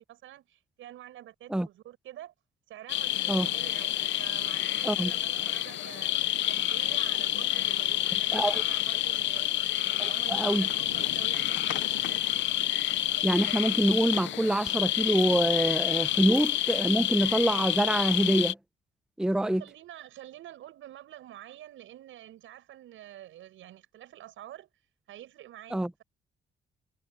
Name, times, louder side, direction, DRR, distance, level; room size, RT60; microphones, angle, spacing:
voice 1, 0.0-2.3 2.7-12.3 19.6-24.7 25.1-26.0, right 13 dB, 80° right, 7.8 m, -47 dB
sound 1, 2.9-18.5, left 14 dB, 70° left, 0.6 m, -28 dB
voice 2, 8.3-8.6 10.0-10.7 13.2-18.6 19.2-19.6 25.7-25.9, right 1 dB, 5° right, 0.7 m, -26 dB
cardioid pair, 90°, 20 cm